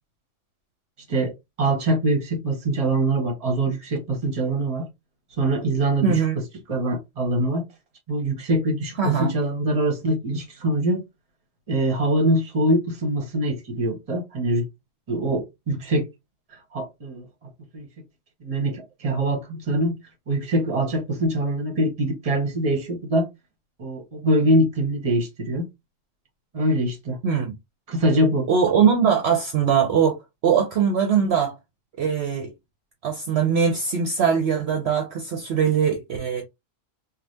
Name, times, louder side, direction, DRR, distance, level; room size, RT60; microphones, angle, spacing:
voice 1, 1.1-4.9 5.4-7.6 8.1-11.0 11.7-14.6 15.1-16.1 16.7-17.3 17.7-17.9 18.4-20.0 20.3-23.3 23.8-25.7 26.5-27.2 27.9-28.5, right 1 dB, 30° right, 0.9 m, -23 dB
voice 2, 6.0-6.4 9.0-9.3 27.2-27.5 28.5-31.5 32.0-32.5 33.0-36.4, right 7 dB, 60° right, 0.8 m, -21 dB
3.3 x 2.4 x 2.6 m
omnidirectional pair, 1.3 m